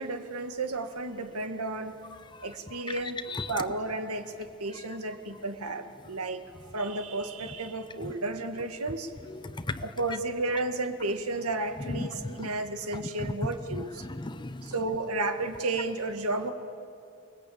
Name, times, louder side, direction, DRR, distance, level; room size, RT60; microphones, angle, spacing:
voice 1, 0.0-2.0 2.4-3.2 3.5-6.4 6.7-9.1 9.8-14.1 14.6-16.5, right 2 dB, 80° right, 6 dB, 1.8 m, -32 dB
voice 2, 9.3-9.8 11.9-12.5 14.0-14.7, left 2 dB, 20° left, 12 dB, 0.7 m, -36 dB
28.5 x 21.5 x 8.7 m, 2.5 s
head